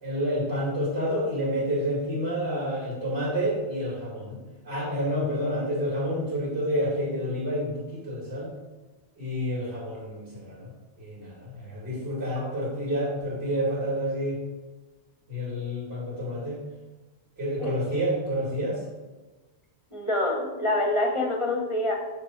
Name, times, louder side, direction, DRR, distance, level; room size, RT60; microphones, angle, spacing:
voice 1, 0.0-4.4 4.6-8.5 9.2-14.4 15.3-16.6 17.4-18.8, equal, 70° right, -6 dB, 2.1 m, -29 dB
voice 2, 19.9-22.0, left 1 dB, 30° left, 1 dB, 0.9 m, -26 dB
6.9 x 3.3 x 4.5 m, 1.2 s
omnidirectional pair, 1.1 m